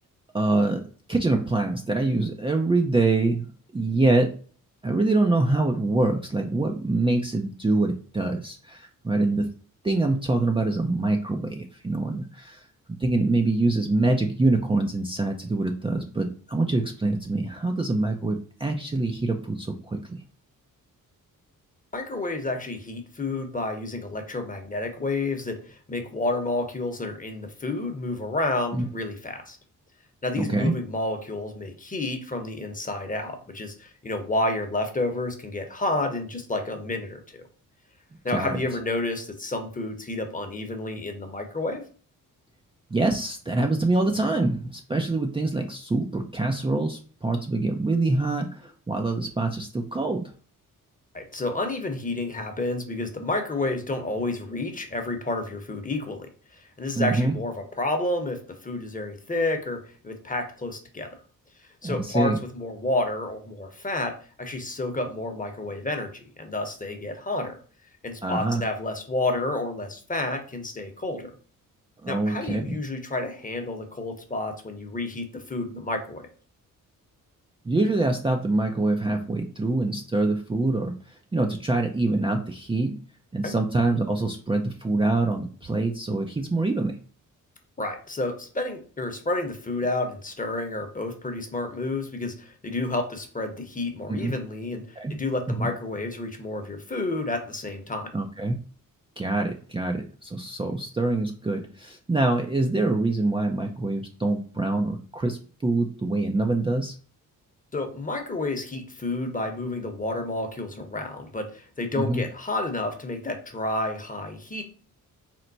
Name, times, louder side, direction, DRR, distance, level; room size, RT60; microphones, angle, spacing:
voice 1, 0.3-0.8 1.1-3.5 3.7-4.3 4.8-9.5 9.8-12.6 13.0-20.2 28.7-28.8 30.4-30.7 38.3-38.5 42.9-50.3 57.0-57.3 61.8-62.4 68.2-68.6 72.0-72.8 77.7-83.0 83.3-87.0 94.1-94.3 95.0-95.1 95.5-95.7 98.1-98.5 99.2-107.0 112.0-112.2, right 2 dB, 15° right, 2 dB, 0.5 m, -25 dB
voice 2, 21.9-29.6 30.2-37.4 38.2-41.8 51.1-56.3 56.5-61.1 61.8-67.6 68.0-71.3 72.1-76.3 83.4-83.5 87.8-98.1 107.7-114.6, left 2 dB, 25° left, 5 dB, 1.0 m, -30 dB
4.5 x 2.1 x 3.9 m, 0.41 s
cardioid pair, 70°, 34 cm